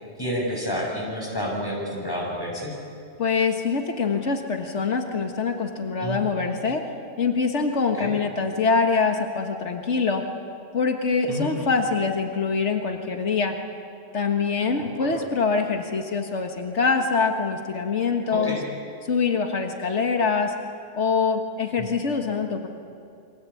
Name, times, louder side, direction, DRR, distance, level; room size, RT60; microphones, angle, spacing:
voice 1, 0.2-2.8 6.0-6.2 7.9-8.1 11.3-11.5 14.8-15.2 18.3-18.6 21.8-21.9, equal, 20° left, -2 dB, 7.0 m, -30 dB
voice 2, 3.2-6.8 7.2-10.2 10.7-13.6 14.1-18.6 19.1-20.5 20.9-22.7, left 4 dB, 90° left, 4 dB, 1.9 m, -24 dB
28.5 x 23.5 x 8.5 m, 2.6 s
omnidirectional pair, 1.2 m